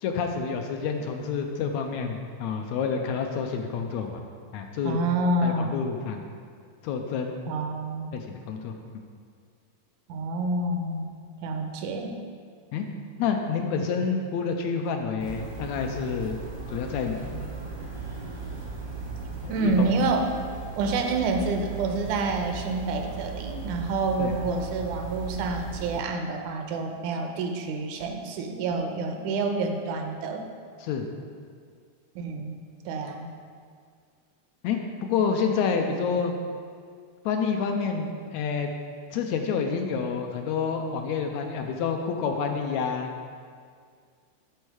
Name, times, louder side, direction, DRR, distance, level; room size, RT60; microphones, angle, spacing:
voice 1, 0.0-4.2 4.5-5.0 5.4-6.2 6.8-7.5 8.1-8.7 12.7-12.9 13.2-16.4 16.7-17.5 19.4-19.9 24.2-24.3 30.8-31.1 34.6-36.3 37.3-38.7 39.1-43.1, left 6 dB, 80° left, 4 dB, 1.8 m, -28 dB
voice 2, 4.8-5.8 7.5-8.1 10.1-11.1 11.4-12.2 19.5-20.3 20.8-30.5 32.2-33.3, right 3 dB, 85° right, 4 dB, 2.2 m, -28 dB
sound 1, 15.2-26.0, right 4 dB, 50° right, 0.6 m, -37 dB
11.5 x 4.4 x 4.8 m, 2.1 s
omnidirectional pair, 3.4 m